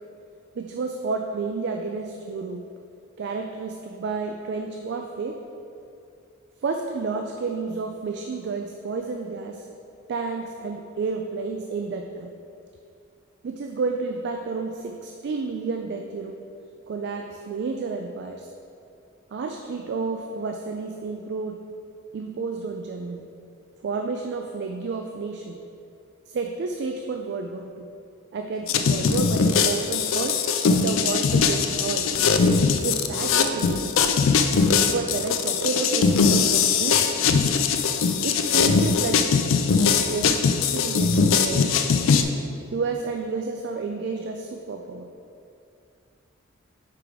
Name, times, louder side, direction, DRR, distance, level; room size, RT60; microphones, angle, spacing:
voice 1, 0.6-2.7 3.2-5.4 6.6-9.7 10.1-12.3 13.4-16.4 16.9-18.5 19.3-21.6 22.1-23.2 23.8-25.6 26.3-27.9 28.3-30.4 30.8-32.4 32.8-34.0 34.8-37.1 37.8-39.3 40.1-41.9 42.7-45.1, right 4 dB, 55° right, 4 dB, 0.3 m, -31 dB
sound 1, 28.7-42.2, left 5 dB, 70° left, 0.4 m, -21 dB
4.9 x 4.7 x 5.0 m, 2.6 s
head